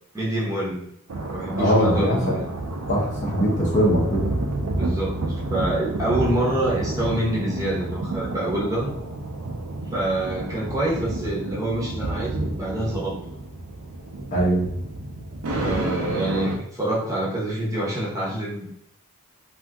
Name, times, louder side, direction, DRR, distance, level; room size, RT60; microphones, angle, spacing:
voice 1, 0.1-0.9 1.3-2.5 4.8-8.9 9.9-13.1 15.5-18.7, right 1 dB, 15° right, -5 dB, 0.8 m, -26 dB
sound 1, 1.1-16.6, right 2 dB, 85° right, 0.5 m, -30 dB
voice 2, 1.6-2.3 2.9-4.2 14.3-14.7, equal, 35° left, -4 dB, 0.7 m, -21 dB
2.7 x 2.5 x 3.4 m, 0.74 s
head